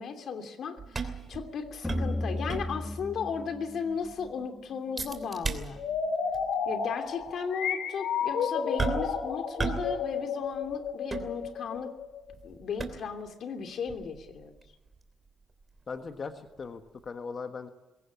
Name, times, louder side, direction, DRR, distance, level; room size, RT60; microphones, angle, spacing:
voice 1, 0.0-5.8 6.6-11.9 12.4-14.5, left 6 dB, 65° left, 6 dB, 2.9 m, -36 dB
sound 1, 0.8-3.1 3.4-3.5 3.9-4.3 5.0-6.1 6.3-6.5 7.2-7.3 8.8-9.2 9.6-10.0 10.2-11.8 12.3-13.3 13.9-16.7 17.0-17.1, right 4 dB, 30° right, 3.0 m, -36 dB
sound 2, 1.8-5.1, left 1 dB, 10° left, 1.3 m, -35 dB
sound 3, 5.8-12.5, left 6 dB, 80° left, 2.5 m, -32 dB
voice 2, 15.9-17.7, left 5 dB, 40° left, 7 dB, 1.5 m, -39 dB
22.0 x 18.0 x 8.6 m, 1.1 s
cardioid pair, 90°, 0 cm